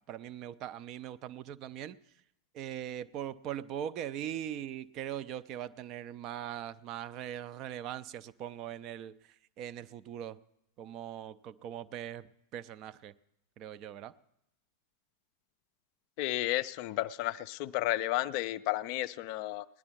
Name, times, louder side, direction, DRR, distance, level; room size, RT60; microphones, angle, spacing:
voice 1, 0.1-2.0 2.5-10.4 10.8-13.1 13.6-14.1, right 10 dB, 35° right, 13 dB, 0.4 m, -41 dB
voice 2, 16.2-19.7, left 16 dB, 45° left, 14 dB, 0.4 m, -32 dB
18.5 x 10.0 x 4.5 m, 0.81 s
figure-of-eight pair, 90°, 0 cm